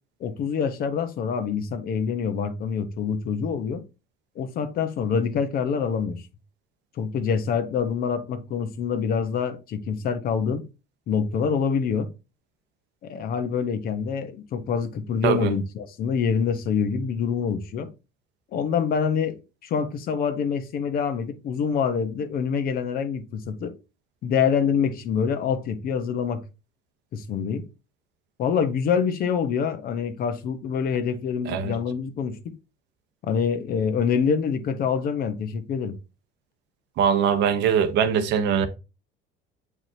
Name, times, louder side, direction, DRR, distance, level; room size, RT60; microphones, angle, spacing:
voice 1, 0.2-3.8 4.4-6.2 7.0-10.6 11.1-12.1 13.0-17.9 18.5-23.7 24.2-26.4 27.1-27.7 28.4-32.5 33.2-36.0, left 6 dB, 50° left, 1.0 m, -26 dB
voice 2, 37.0-38.7, right 7 dB, 60° right, 1.0 m, -22 dB
7.5 x 4.8 x 2.8 m
cardioid pair, 140°, 20 cm